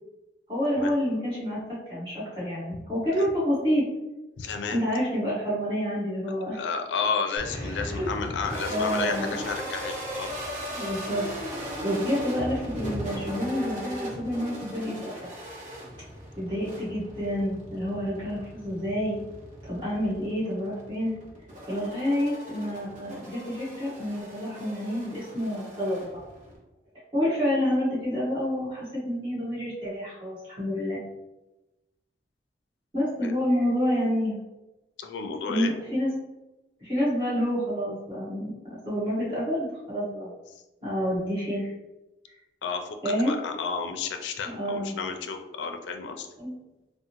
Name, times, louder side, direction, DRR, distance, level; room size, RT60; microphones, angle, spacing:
voice 1, 0.5-3.8 4.7-6.6 7.5-8.1 8.7-9.3 10.7-15.3 16.4-19.2 19.6-21.1 21.7-26.0 27.1-31.0 32.9-34.4 35.5-36.1 36.8-40.3 40.8-41.7 43.0-43.3 44.4-44.9 46.4-46.5, equal, 25° right, -9 dB, 1.5 m, -28 dB
voice 2, 4.4-4.8 6.5-10.3 33.2-33.3 35.0-35.7 42.6-46.3, left 5 dB, 85° left, 6 dB, 0.4 m, -32 dB
sound 1, 7.4-26.6, equal, 45° right, 0.9 m, -37 dB
3.5 x 2.1 x 2.9 m, 1.0 s
head